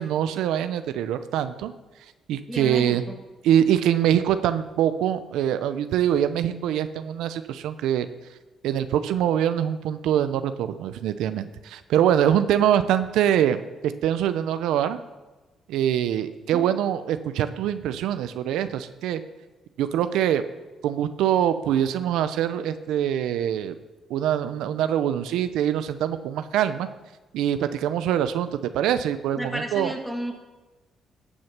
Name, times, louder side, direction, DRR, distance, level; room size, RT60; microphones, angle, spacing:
voice 1, 0.0-1.7 2.3-3.0 3.4-8.1 8.6-15.0 15.7-19.2 19.8-20.4 20.8-23.7 24.1-26.9 27.3-28.5 28.7-29.9, right 10 dB, 90° right, 11 dB, 0.6 m, -24 dB
voice 2, 2.5-3.2 16.5-16.6 29.4-30.4, equal, ahead, 3 dB, 1.9 m, -32 dB
15.5 x 6.4 x 6.0 m, 1.2 s
cardioid pair, 90°, 0 cm